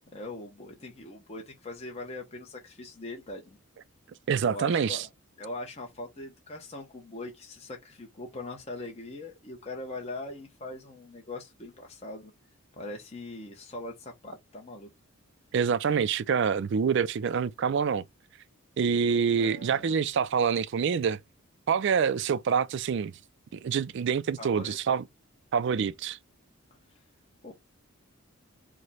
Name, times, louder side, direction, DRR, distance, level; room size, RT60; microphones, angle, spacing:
voice 1, 0.1-3.6 4.4-5.1 5.4-12.3 12.7-14.9 19.3-20.0 24.4-24.8 27.4-27.5, left 2 dB, 30° left, 0.7 m, -41 dB
voice 2, 4.3-5.1 15.5-18.0 18.8-21.2 21.7-23.1 23.5-25.0 25.5-26.2, right 6 dB, 55° right, 0.3 m, -26 dB
4.8 x 2.1 x 4.1 m
head